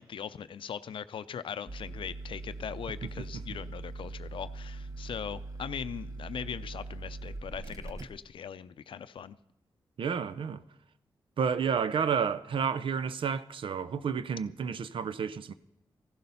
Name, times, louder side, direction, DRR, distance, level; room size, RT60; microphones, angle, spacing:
voice 1, 0.0-9.4, left 8 dB, 75° left, 0.5 m, -40 dB
sound 1, 1.7-8.1, right 2 dB, 40° right, 1.0 m, -41 dB
voice 2, 10.0-10.6 11.4-15.5, right 6 dB, 75° right, 0.6 m, -30 dB
15.5 x 12.0 x 5.5 m
cardioid pair, 50°, 9 cm